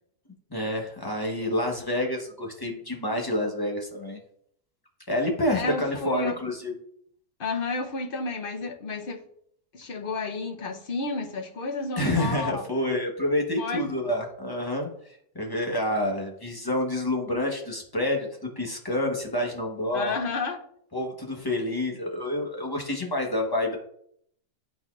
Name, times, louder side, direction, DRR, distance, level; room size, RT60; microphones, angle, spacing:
voice 1, 0.5-4.2 5.1-6.8 12.0-20.2 20.9-23.8, left 1 dB, 20° left, 0 dB, 0.9 m, -28 dB
voice 2, 5.5-6.4 7.4-9.2 9.7-12.7 13.6-13.9 19.9-20.6, left 3 dB, 50° left, 4 dB, 0.7 m, -31 dB
11.5 x 4.2 x 2.4 m, 0.69 s
omnidirectional pair, 1.7 m